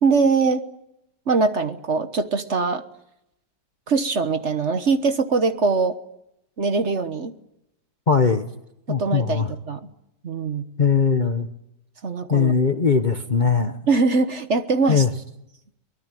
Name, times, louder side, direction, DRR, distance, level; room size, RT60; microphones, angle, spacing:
voice 1, 0.0-0.6 1.3-2.8 3.9-6.0 6.6-7.3 8.9-9.8 10.2-10.6 12.0-12.5 13.9-15.0, right 4 dB, 45° right, 10 dB, 1.4 m, -22 dB
voice 2, 8.1-8.5 8.9-9.5 10.8-11.5 12.3-13.8 14.9-15.1, left 5 dB, 35° left, 8 dB, 1.0 m, -20 dB
23.5 x 20.0 x 9.1 m, 0.84 s
omnidirectional pair, 1.8 m